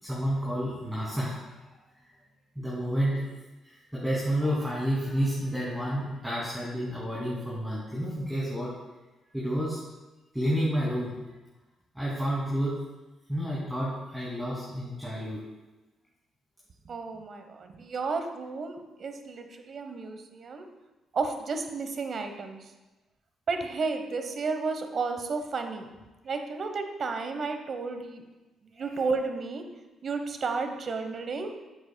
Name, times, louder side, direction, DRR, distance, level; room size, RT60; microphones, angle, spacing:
voice 1, 0.0-1.6 2.6-3.3 3.6-8.7 9.3-9.8 10.3-11.3 11.9-12.8 13.3-15.4 28.7-28.9, equal, 5° right, -8 dB, 2.5 m, -30 dB
voice 2, 16.8-20.6 21.1-22.7 23.5-25.9 26.2-28.2 28.6-29.6 30.0-31.5, right 4 dB, 50° right, 6 dB, 1.0 m, -32 dB
10.5 x 7.9 x 2.3 m, 1.1 s
cardioid pair, 90°, 0 cm